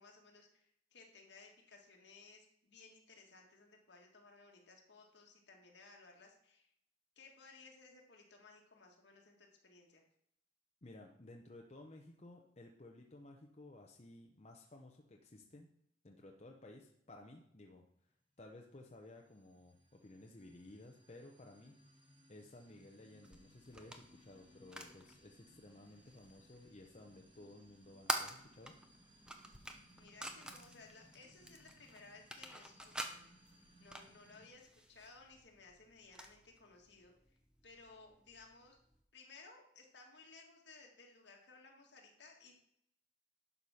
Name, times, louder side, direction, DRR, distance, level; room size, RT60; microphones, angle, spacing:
voice 1, 0.0-6.7 7.2-10.0 30.0-33.3 33.8-37.4 37.6-38.8 39.1-42.5, left 3 dB, 70° left, 1 dB, 1.9 m, -60 dB
voice 2, 10.8-15.7 16.0-17.8 18.4-21.8 22.3-28.7, left 2 dB, 35° left, 1 dB, 0.8 m, -56 dB
sound 1, 18.8-34.5, equal, 30° right, 2.3 m, -66 dB
sound 2, 23.2-39.0, right 1 dB, 5° right, 0.7 m, -49 dB
11.0 x 4.9 x 5.7 m, 0.72 s
head